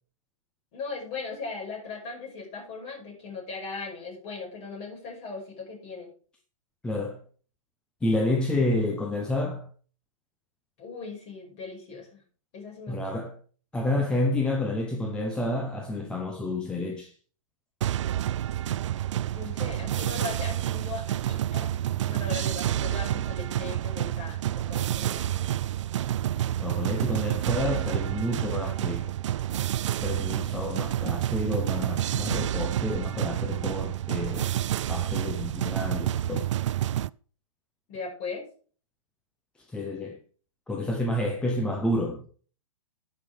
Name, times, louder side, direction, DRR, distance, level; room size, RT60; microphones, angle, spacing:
voice 1, 0.7-6.1 10.8-12.2 12.5-13.1 19.3-21.7 22.1-25.3 30.3-30.4 37.9-38.4, left 4 dB, 35° left, 5.5 m, -38 dB
voice 2, 6.8-7.2 8.0-9.7 12.9-13.4 13.7-17.1 26.6-29.2 30.0-34.5 34.9-36.5 39.7-40.2 40.7-42.3, left 1 dB, 5° left, 0.7 m, -29 dB
sound 1, 17.8-37.1, right 12 dB, 60° right, 0.4 m, -29 dB
16.5 x 5.7 x 3.5 m
hypercardioid pair, 150°, 18 cm